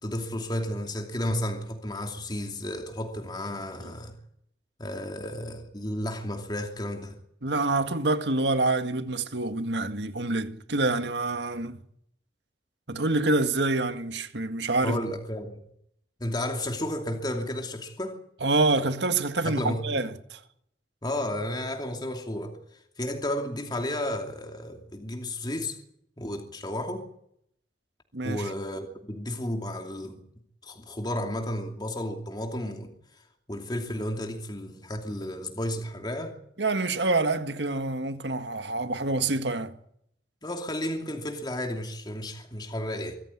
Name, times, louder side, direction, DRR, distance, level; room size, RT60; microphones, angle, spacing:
voice 1, 0.0-4.1 4.8-7.2 14.8-15.6 16.2-18.2 19.4-20.0 21.0-25.8 26.2-27.1 28.2-30.2 30.6-33.2 33.5-36.4 40.4-43.1, left 1 dB, 25° left, 2.7 m, -32 dB
voice 2, 7.4-11.8 12.9-15.0 18.4-20.4 28.1-28.5 36.6-39.7, right 2 dB, 75° right, 1.8 m, -27 dB
24.0 x 14.5 x 9.7 m
head